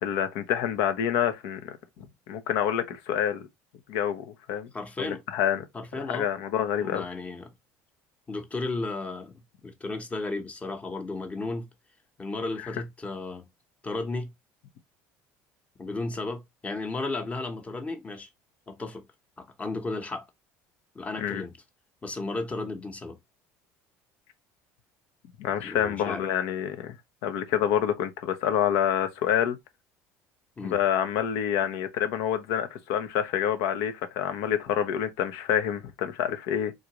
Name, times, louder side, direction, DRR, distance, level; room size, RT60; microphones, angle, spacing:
voice 1, 0.0-3.5 3.9-4.7 5.0-5.6 6.1-7.0 12.6-12.7 21.2-21.4 25.4-26.9 27.2-29.6 30.6-36.7, left 9 dB, 80° left, 0.7 m, -27 dB
voice 2, 4.7-5.2 5.7-6.3 6.8-7.5 8.3-11.7 12.2-13.5 13.8-14.3 15.8-18.3 18.7-19.0 19.4-20.3 20.9-21.5 22.0-23.2 25.6-26.2 30.6-30.8, left 3 dB, 20° left, 0.8 m, -34 dB
3.8 x 2.4 x 2.9 m
supercardioid pair, 105°, 6 cm